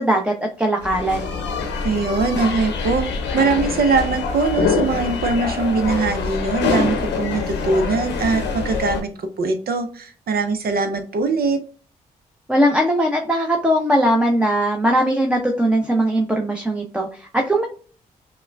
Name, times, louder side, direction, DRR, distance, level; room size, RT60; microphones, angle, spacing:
voice 1, 0.0-1.3 12.5-17.7, right 1 dB, 5° right, 1 dB, 0.7 m, -20 dB
sound 1, 0.8-9.0, left 5 dB, 75° left, 0.8 m, -25 dB
voice 2, 1.8-3.1 3.3-11.6, right 4 dB, 55° right, 8 dB, 0.7 m, -21 dB
5.3 x 2.2 x 2.2 m, 0.42 s
hypercardioid pair, 40°, 19 cm